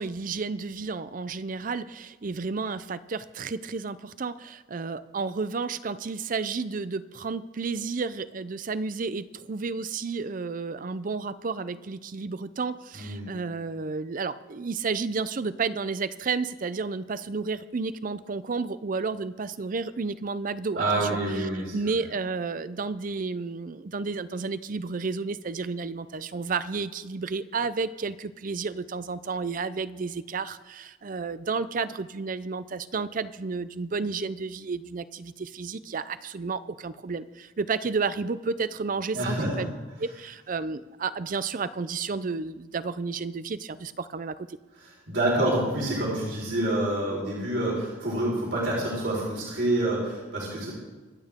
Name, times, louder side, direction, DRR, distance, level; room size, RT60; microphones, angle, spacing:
voice 1, 0.0-21.2 21.7-39.7 40.0-44.6, right 4 dB, 50° right, 15 dB, 0.5 m, -31 dB
voice 2, 12.9-13.3 20.7-21.9 39.1-39.5 44.8-50.7, right 1 dB, 75° right, -4 dB, 4.4 m, -27 dB
25.5 x 8.7 x 3.7 m, 1.2 s
head